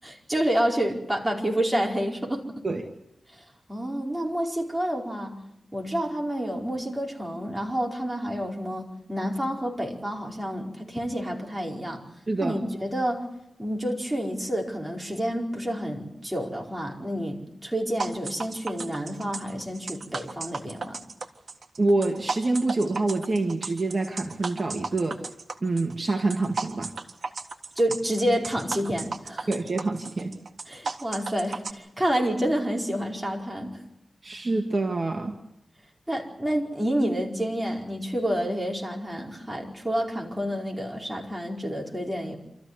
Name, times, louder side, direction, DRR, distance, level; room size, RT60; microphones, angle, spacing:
voice 1, 0.0-2.7 3.3-5.4 5.7-12.0 12.4-13.2 13.6-21.0 27.8-29.5 30.7-33.8 36.1-42.4, equal, 10° right, 0 dB, 4.7 m, -29 dB
voice 2, 12.3-12.6 21.8-25.2 25.6-26.9 29.5-30.4 34.2-35.3, right 2 dB, 45° right, 3 dB, 2.0 m, -26 dB
sound 1, 18.0-31.7, right 4 dB, 70° right, 1.7 m, -35 dB
27.5 x 14.5 x 9.6 m, 0.85 s
wide cardioid pair, 95°, 0 cm